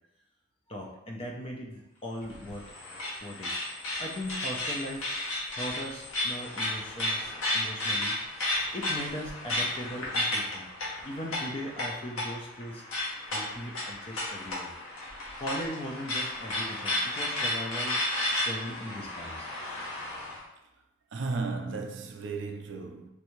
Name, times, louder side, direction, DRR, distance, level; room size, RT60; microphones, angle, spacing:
voice 1, 0.7-2.6 3.2-3.6 4.0-5.1 5.5-8.2 8.7-10.7 11.0-12.8 13.3-14.7 15.4-18.1 18.4-19.6, equal, 25° left, 0.4 m, -39 dB
sound 1, 2.2-20.4, left 1 dB, 80° left, 0.8 m, -33 dB
voice 2, 21.1-23.1, right 3 dB, 55° right, 0.4 m, -34 dB
3.2 x 2.6 x 3.0 m
head